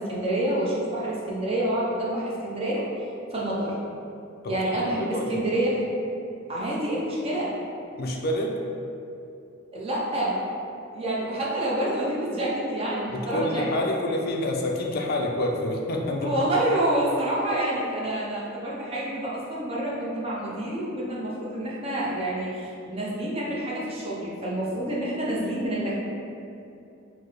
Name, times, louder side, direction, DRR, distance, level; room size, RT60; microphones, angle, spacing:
voice 1, 0.0-2.8 3.3-3.8 4.5-5.8 6.5-7.5 9.7-10.4 10.9-13.6 16.2-26.0, right 1 dB, 30° right, -6 dB, 0.7 m, -28 dB
voice 2, 4.4-5.4 8.0-8.6 13.1-16.4, left 1 dB, 50° left, 0 dB, 0.4 m, -28 dB
4.5 x 2.1 x 3.1 m, 2.7 s
head